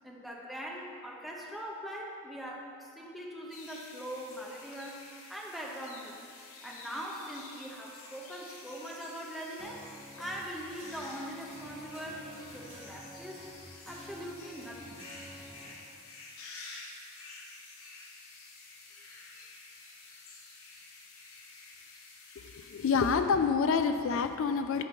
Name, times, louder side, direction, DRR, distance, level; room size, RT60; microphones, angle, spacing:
voice 1, 0.0-5.0 5.3-6.2 6.6-13.5 13.9-15.0, equal, ahead, -2 dB, 0.8 m, -42 dB
sound 1, 3.5-23.2, left 3 dB, 75° left, 1.1 m, -50 dB
sound 2, 9.6-15.7, right 1 dB, 30° right, 1.0 m, -50 dB
voice 2, 22.4-24.8, left 5 dB, 60° left, 8 dB, 0.3 m, -28 dB
8.6 x 4.6 x 5.6 m, 2.4 s
head